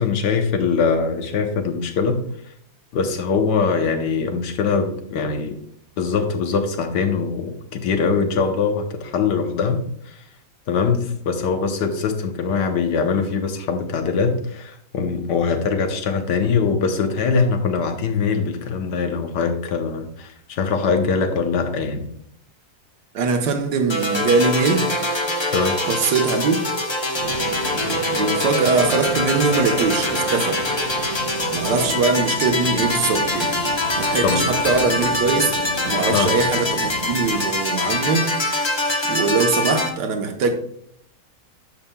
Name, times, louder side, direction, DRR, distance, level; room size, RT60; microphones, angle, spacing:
voice 1, 0.0-2.2 2.9-5.6 6.0-10.2 10.7-22.1 25.5-25.8 34.2-34.5 36.1-36.3, left 5 dB, 85° left, 6 dB, 1.6 m, -22 dB
voice 2, 23.1-24.9 25.9-26.6 28.1-30.6 31.5-33.5 34.0-35.5 35.8-38.3 39.1-40.5, right 4 dB, 90° right, 5 dB, 1.6 m, -21 dB
sound 1, 23.9-39.9, left 1 dB, 35° left, 0.4 m, -24 dB
sound 2, 27.2-37.4, right 1 dB, 60° left, 3.0 m, -34 dB
10.0 x 7.0 x 2.3 m, 0.67 s
omnidirectional pair, 1.8 m